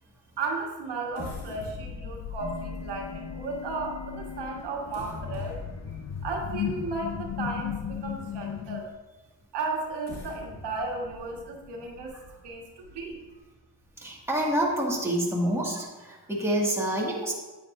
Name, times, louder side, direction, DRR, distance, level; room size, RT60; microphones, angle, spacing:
voice 1, 0.4-5.6 6.2-8.9 9.5-12.2 12.4-13.3, right 3 dB, 75° right, 0 dB, 1.6 m, -34 dB
sound 1, 1.1-8.3 8.8-8.9 9.8-13.4 13.8-13.9 14.3-14.6, left 4 dB, 75° left, 2.0 m, -43 dB
sound 2, 2.4-8.8, left 8 dB, 40° left, 0.7 m, -36 dB
voice 2, 14.0-17.3, right 1 dB, 5° right, -4 dB, 1.9 m, -27 dB
9.3 x 8.6 x 2.6 m, 1.2 s
cardioid pair, 90°, 41 cm